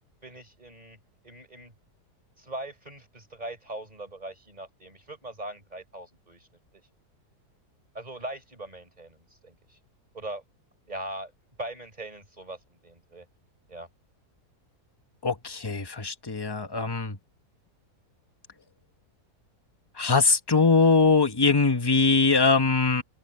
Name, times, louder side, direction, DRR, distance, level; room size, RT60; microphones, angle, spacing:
voice 1, 0.2-1.0 1.2-1.7 2.4-6.5 6.7-6.8 7.9-9.8 10.1-10.4 10.9-11.3 11.6-13.3 13.7-13.9, right 1 dB, 25° right, 5.1 m, -40 dB
voice 2, 15.2-17.2 20.0-23.0, left 4 dB, 15° left, 1.2 m, -22 dB
omnidirectional pair, 1.7 m